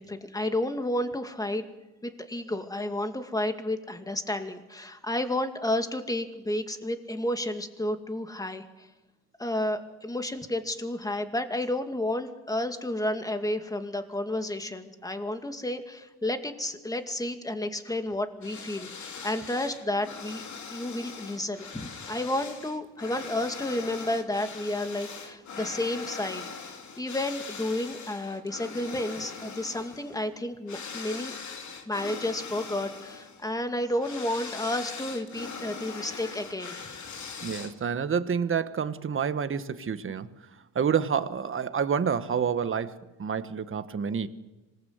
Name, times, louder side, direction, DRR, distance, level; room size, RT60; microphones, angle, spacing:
voice 1, 0.0-1.6 2.0-8.9 9.4-20.4 20.7-31.4 31.9-36.8, left 1 dB, 10° left, 7 dB, 2.2 m, -31 dB
sound 1, 18.4-38.0, left 5 dB, 50° left, 2.9 m, -41 dB
voice 2, 37.4-40.3 40.7-44.3, right 7 dB, 35° right, 11 dB, 1.4 m, -28 dB
26.0 x 19.5 x 8.1 m, 1.1 s
cardioid pair, 110°, 36 cm